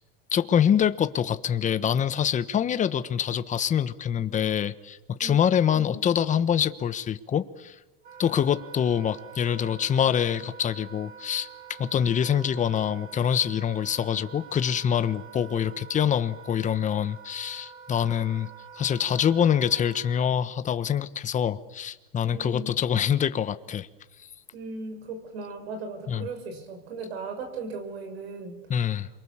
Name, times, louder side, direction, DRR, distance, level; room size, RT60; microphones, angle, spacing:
voice 1, 0.3-7.8 8.2-11.5 11.8-23.9 26.1-26.3 28.7-29.1, left 8 dB, 25° left, 12 dB, 1.2 m, -25 dB
voice 2, 5.7-6.0 22.2-22.7 24.5-28.6, right 3 dB, 90° right, 6 dB, 6.9 m, -37 dB
Wind instrument woodwind instrument, 8.0-20.3, right 8 dB, 30° right, 5.2 m, -46 dB
27.5 x 23.5 x 7.2 m, 1.0 s
supercardioid pair, 135°, 30 cm